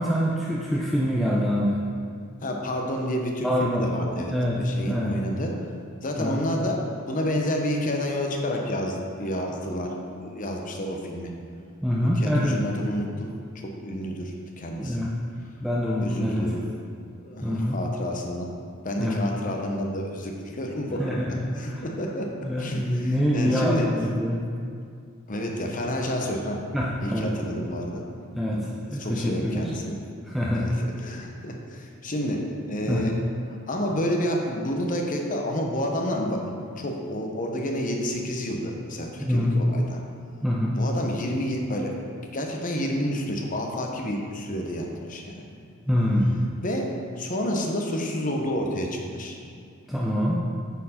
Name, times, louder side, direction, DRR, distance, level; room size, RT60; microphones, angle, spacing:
voice 1, 0.0-1.8 3.4-3.9 4.3-5.1 6.2-6.5 11.8-12.7 14.8-15.1 15.6-16.5 17.4-17.8 19.0-19.2 21.0-21.8 22.4-24.4 26.7-27.5 28.3-29.7 30.2-30.7 32.9-33.1 39.2-39.5 40.4-40.8 45.9-46.4 49.9-50.4, equal, ahead, -5 dB, 0.5 m, -25 dB
voice 2, 2.4-5.5 6.0-11.3 12.0-15.0 16.0-16.6 17.2-18.5 18.8-21.2 21.6-22.3 22.6-23.9 25.3-26.6 27.0-28.0 28.5-28.7 29.0-30.0 30.5-30.7 31.0-33.2 33.7-40.0 40.8-41.9 42.3-45.5 46.6-49.4, equal, 40° left, 1 dB, 0.8 m, -29 dB
9.1 x 4.5 x 4.3 m, 2.3 s
head